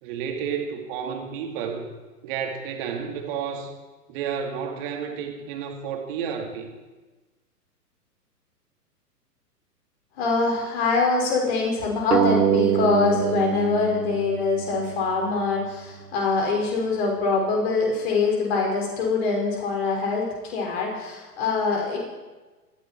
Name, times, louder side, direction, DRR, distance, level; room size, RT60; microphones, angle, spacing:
voice 1, 0.0-1.9 2.2-3.7 4.1-6.7, right 7 dB, 35° right, 3 dB, 2.5 m, -31 dB
voice 2, 10.2-22.0, left 4 dB, 40° left, -1 dB, 5.7 m, -24 dB
sound 1, 12.1-15.3, right 9 dB, 80° right, 0.6 m, -25 dB
18.5 x 15.0 x 4.6 m, 1.2 s
figure-of-eight pair, 115°, 48 cm